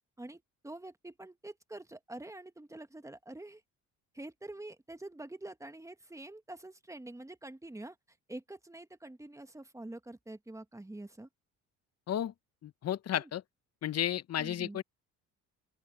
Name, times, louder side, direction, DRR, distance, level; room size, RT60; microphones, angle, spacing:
voice 1, 0.2-3.6 4.1-7.9 8.3-11.3 13.1-13.3 14.4-14.8, right 2 dB, 10° right, 1.4 m, -46 dB
voice 2, 12.6-13.4 13.8-14.8, left 11 dB, 45° left, 0.8 m, -33 dB
open air
supercardioid pair, 80°, 36 cm